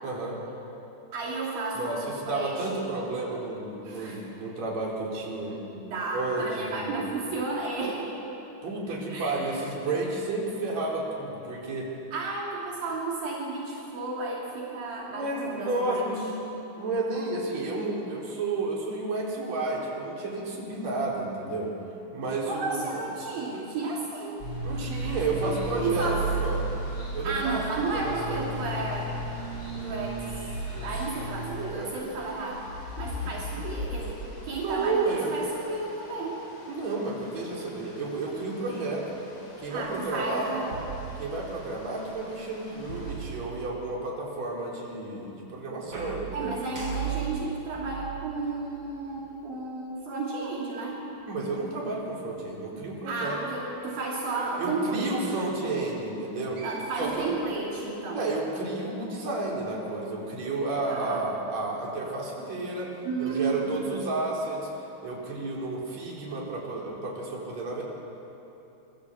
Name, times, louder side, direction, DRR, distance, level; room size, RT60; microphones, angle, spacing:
voice 1, 0.0-0.4 1.8-5.6 6.1-7.1 8.6-11.9 15.1-16.2 16.8-21.7 22.1-22.8 24.6-26.2 26.4-26.6 27.1-27.6 27.9-28.5 31.3-32.0 33.2-33.3 34.6-35.3 36.7-39.2 39.6-40.6 41.2-46.6 51.3-53.4 54.6-56.6 57.0-57.3 58.2-64.7 65.0-67.8, right 3 dB, 45° right, -3 dB, 5.2 m, -31 dB
voice 2, 1.1-2.8 3.8-4.2 5.5-8.1 8.9-9.5 12.1-16.1 22.5-24.4 25.4-26.3 27.2-29.2 29.7-30.2 30.7-32.7 33.0-36.4 39.7-40.7 46.3-51.0 53.1-55.4 56.6-58.3 60.9-61.2 63.0-63.8, right 3 dB, 70° right, -4 dB, 4.5 m, -33 dB
sound 1, 24.4-31.3, right 2 dB, 25° left, 7.3 m, -33 dB
sound 2, 24.9-43.2, left 2 dB, 70° left, 7.0 m, -44 dB
sound 3, 40.7-41.8 42.9-44.0 45.8-49.4 50.2-50.3 53.6-54.9 56.2-56.3 56.6-57.8, right 7 dB, 30° right, 5.8 m, -39 dB
26.0 x 22.5 x 8.1 m, 3.0 s
omnidirectional pair, 4.3 m